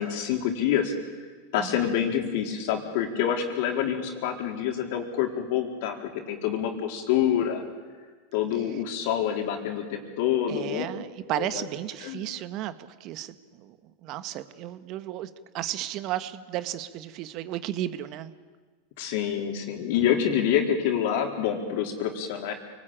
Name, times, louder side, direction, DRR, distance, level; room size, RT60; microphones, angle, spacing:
voice 1, 0.0-7.6 8.3-10.8 11.3-11.6 12.0-12.2 19.0-22.5, left 9 dB, 65° left, 3 dB, 4.5 m, -27 dB
voice 2, 1.6-1.9 10.5-12.7 13.0-13.8 14.0-18.3, right 13 dB, 50° right, 11 dB, 1.7 m, -34 dB
29.0 x 19.5 x 9.1 m, 1.4 s
hypercardioid pair, 95°, 0 cm